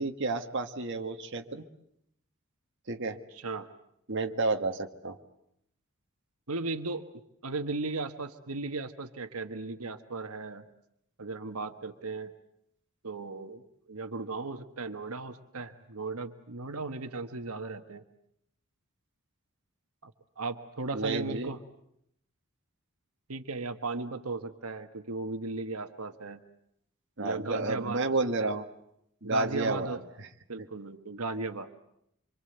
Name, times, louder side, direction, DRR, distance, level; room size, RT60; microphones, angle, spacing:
voice 1, 0.0-1.6 2.9-3.2 4.1-5.2 20.9-21.5 27.2-28.6 29.2-30.0, right 3 dB, 55° right, 4 dB, 1.6 m, -31 dB
voice 2, 3.3-3.7 6.5-7.0 7.4-10.6 11.2-12.3 13.0-18.0 20.0-20.1 20.4-21.6 23.3-26.4 27.2-28.1 28.4-28.5 29.2-30.0 30.5-31.7, right 3 dB, 80° right, 7 dB, 1.5 m, -36 dB
26.0 x 25.5 x 8.0 m, 0.76 s
head